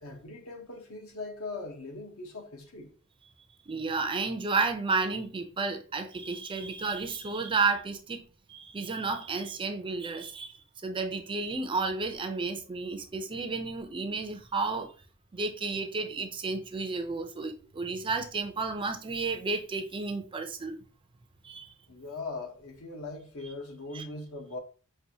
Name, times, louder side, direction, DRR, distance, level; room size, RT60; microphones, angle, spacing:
voice 1, 0.0-2.9 21.9-24.6, left 3 dB, 65° left, 0.9 m, -40 dB
voice 2, 3.7-10.5 10.8-14.9 15.3-20.8 21.4-21.7 23.9-24.1, right 4 dB, 20° right, 0.4 m, -32 dB
5.4 x 2.5 x 2.7 m
head